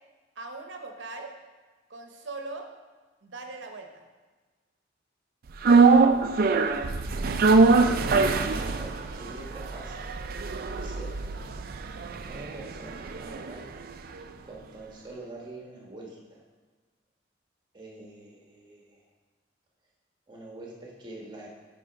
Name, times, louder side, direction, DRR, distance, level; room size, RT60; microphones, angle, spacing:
voice 1, 0.4-1.3 1.9-2.7 3.2-4.0, right 3 dB, 75° right, 4 dB, 0.8 m, -40 dB
sound 1, 5.6-13.9 14.2-14.3, right 4 dB, 50° right, 0.4 m, -23 dB
voice 2, 7.7-10.1 10.7-11.1 12.3-13.7 14.4-16.4 17.7-19.0 20.3-21.5, right 2 dB, 25° right, -2 dB, 1.3 m, -44 dB
6.1 x 5.4 x 5.1 m, 1.3 s
head